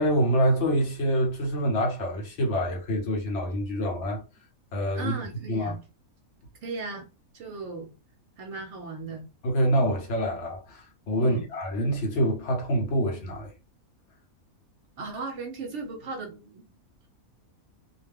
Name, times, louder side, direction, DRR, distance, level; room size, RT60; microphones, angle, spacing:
voice 1, 0.0-4.2 4.7-5.1 5.5-5.7 9.4-13.5, equal, 60° left, 0.9 m, -26 dB
voice 2, 4.9-5.8 6.6-7.1 7.3-7.9 8.4-9.2 11.2-11.4 15.0-16.7, right 4 dB, 65° right, 0.8 m, -36 dB
2.4 x 2.2 x 3.4 m
omnidirectional pair, 1.5 m